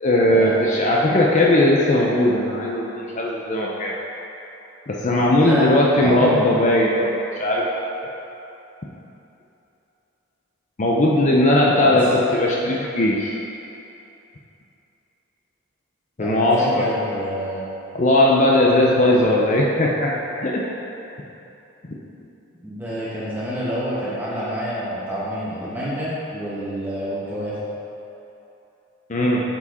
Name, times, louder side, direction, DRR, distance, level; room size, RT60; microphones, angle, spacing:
voice 1, 0.0-3.9 4.9-7.1 7.4-7.7 10.8-13.3 16.2-16.8 17.9-20.6 29.1-29.4, left 1 dB, 35° left, -3 dB, 0.5 m, -18 dB
voice 2, 6.0-6.3 11.8-12.0 16.2-17.6 22.6-27.6, equal, 10° right, -9 dB, 1.1 m, -27 dB
7.0 x 4.6 x 4.2 m, 3.0 s
head